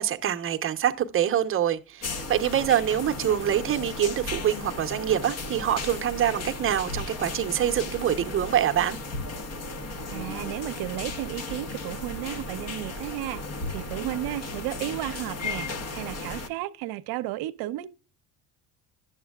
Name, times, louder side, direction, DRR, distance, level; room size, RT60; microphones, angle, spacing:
voice 1, 0.0-9.0, right 10 dB, 30° right, 0.8 m, -25 dB
sound 1, 2.0-16.5, left 3 dB, 40° left, 1.1 m, -35 dB
voice 2, 10.1-13.4 13.7-17.9, right 15 dB, 65° right, 0.7 m, -33 dB
11.0 x 7.2 x 2.3 m
supercardioid pair, 105°, 40 cm